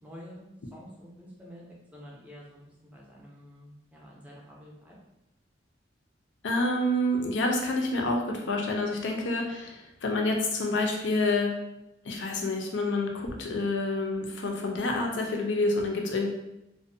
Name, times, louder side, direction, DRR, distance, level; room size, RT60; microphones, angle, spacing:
voice 1, 0.0-1.6 1.9-2.6 2.9-5.0, equal, 10° right, -4 dB, 0.5 m, -48 dB
voice 2, 6.4-11.5 12.0-16.3, left 2 dB, 80° left, 1 dB, 0.5 m, -28 dB
2.4 x 2.1 x 2.6 m, 0.88 s
head